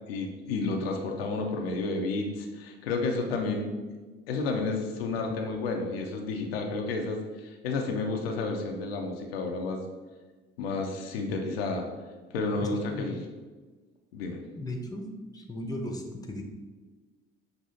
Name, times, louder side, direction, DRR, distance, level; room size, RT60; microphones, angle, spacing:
voice 1, 0.1-3.7 4.3-9.8 10.6-11.8 12.3-13.2 14.1-14.4, left 3 dB, 80° left, 2 dB, 0.6 m, -31 dB
voice 2, 12.6-13.2 14.5-15.1 15.3-16.4, left 1 dB, 10° left, 3 dB, 0.7 m, -36 dB
6.4 x 2.6 x 2.7 m, 1.3 s
hypercardioid pair, 55°, 30 cm